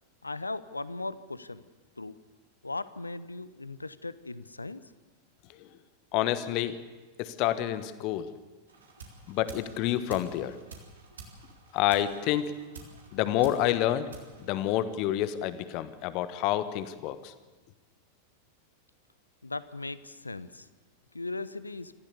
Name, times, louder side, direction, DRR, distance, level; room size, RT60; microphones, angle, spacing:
voice 1, 0.2-1.6 2.0-2.2 2.6-4.8 19.4-20.7 21.1-21.9, left 3 dB, 80° left, 16 dB, 0.8 m, -38 dB
voice 2, 6.1-6.8 7.2-8.3 9.3-10.6 11.7-12.5 13.1-14.1 14.4-17.3, left 13 dB, 40° left, 12 dB, 1.3 m, -28 dB
sound 1, 8.7-15.2, right 4 dB, 70° right, 3.5 m, -50 dB
25.0 x 15.0 x 7.0 m, 1.3 s
figure-of-eight pair, 90°, 0 cm